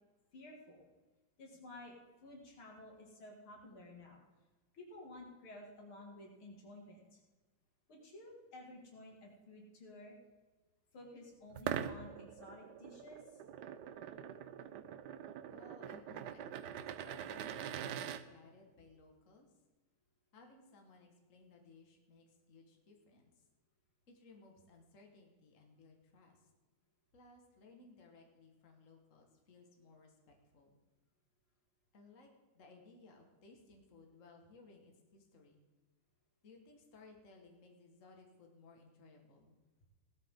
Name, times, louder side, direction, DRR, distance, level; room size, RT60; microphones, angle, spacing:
voice 1, 0.3-0.8 1.4-4.2 4.7-7.2 7.9-10.2 10.9-13.4, left 1 dB, 90° left, -1 dB, 3.3 m, -53 dB
sound 1, 11.5-18.2, right 9 dB, 70° right, 1.1 m, -43 dB
voice 2, 15.5-19.5 20.3-23.4 24.1-26.5 27.1-30.7 31.9-32.3 32.5-35.6 36.4-39.5, left 3 dB, 40° left, 2 dB, 1.9 m, -61 dB
17.0 x 12.5 x 3.8 m, 1.3 s
omnidirectional pair, 2.2 m